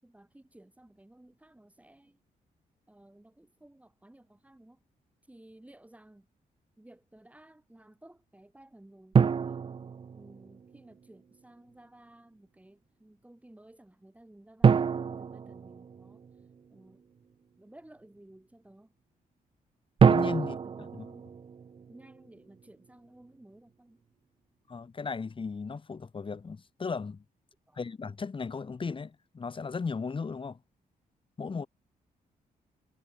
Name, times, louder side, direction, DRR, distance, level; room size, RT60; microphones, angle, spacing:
voice 1, 0.0-2.2 2.9-4.8 5.3-6.3 6.8-9.7 10.1-16.2 16.7-17.0 17.6-18.9 20.4-21.4 21.9-24.0 27.7-27.8, right 1 dB, 10° right, 5.5 m, -56 dB
sound 1, 9.1-10.8 14.6-16.5 20.0-22.3, right 6 dB, 35° right, 0.6 m, -26 dB
voice 2, 20.1-21.1 24.7-27.2 27.8-30.6 31.4-31.7, left 5 dB, 35° left, 3.7 m, -36 dB
cardioid pair, 110°, 15 cm